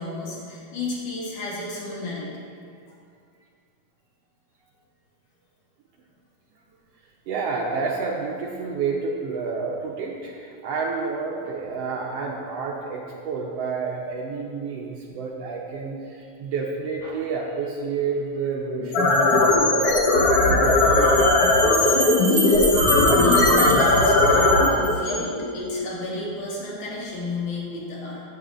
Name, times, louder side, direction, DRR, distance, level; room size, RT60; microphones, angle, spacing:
voice 1, 0.0-2.5 20.9-21.2 21.7-28.2, left 2 dB, 85° left, -6 dB, 3.5 m, -31 dB
voice 2, 7.3-20.0 20.4-21.0, right 4 dB, 70° right, -1 dB, 1.5 m, -29 dB
sound 1, 18.8-25.9, left 2 dB, 60° left, 2.0 m, -18 dB
Bell, 19.4-19.5 21.0-24.9, right 2 dB, 55° right, 2.5 m, -28 dB
13.5 x 8.5 x 2.5 m, 2.3 s
omnidirectional pair, 3.4 m